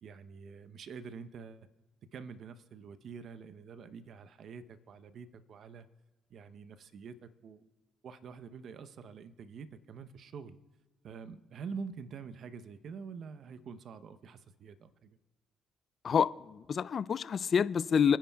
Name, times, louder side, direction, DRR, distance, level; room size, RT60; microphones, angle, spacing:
voice 1, 0.0-1.7 2.1-5.9 6.3-7.7 8.0-10.6 11.0-15.2, right 5 dB, 65° right, 0.8 m, -46 dB
voice 2, 16.0-18.2, left 7 dB, 55° left, 0.4 m, -28 dB
26.0 x 10.5 x 2.3 m
supercardioid pair, 60°, 0 cm